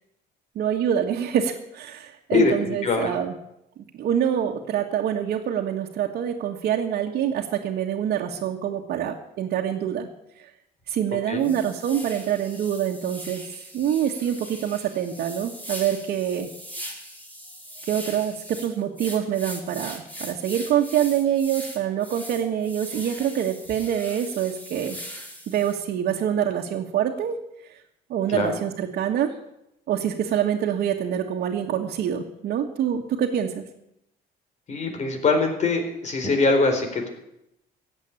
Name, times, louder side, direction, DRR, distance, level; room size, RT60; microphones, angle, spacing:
voice 1, 0.5-3.3 3.9-10.1 10.9-13.4 13.7-16.5 17.8-25.0 25.5-27.4 28.1-29.3 29.9-33.6, right 9 dB, 65° right, -1 dB, 1.7 m, -25 dB
voice 2, 2.3-3.2 11.3-11.5 28.3-28.5 34.7-37.1, left 3 dB, 45° left, 5 dB, 4.1 m, -23 dB
sound 1, 10.8-10.9 11.4-25.8, equal, 10° left, 4.4 m, -40 dB
16.0 x 8.1 x 9.9 m, 0.84 s
cardioid pair, 110°, 17 cm